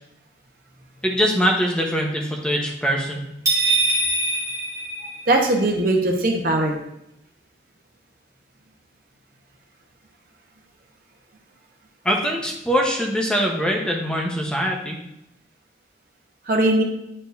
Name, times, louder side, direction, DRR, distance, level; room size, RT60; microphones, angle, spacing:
voice 1, 1.0-3.2 12.0-15.0, equal, 5° left, 0 dB, 1.0 m, -22 dB
sound 1, 3.5-5.6, right 2 dB, 20° right, 1.7 m, -23 dB
voice 2, 5.3-6.8 16.5-16.8, right 1 dB, 50° right, 1 dB, 1.1 m, -19 dB
9.8 x 4.5 x 2.7 m, 0.82 s
head